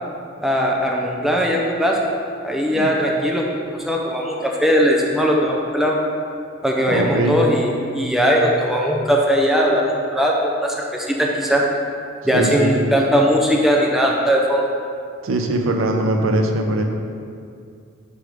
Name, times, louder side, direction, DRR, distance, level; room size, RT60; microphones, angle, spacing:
voice 1, 0.4-2.1 2.4-3.5 3.8-6.0 6.6-11.6 12.2-14.6, equal, ahead, -2 dB, 0.6 m, -19 dB
voice 2, 6.9-7.4 12.3-12.7 15.2-16.8, right 1 dB, 85° right, 3 dB, 0.6 m, -21 dB
5.3 x 4.6 x 5.0 m, 2.4 s
head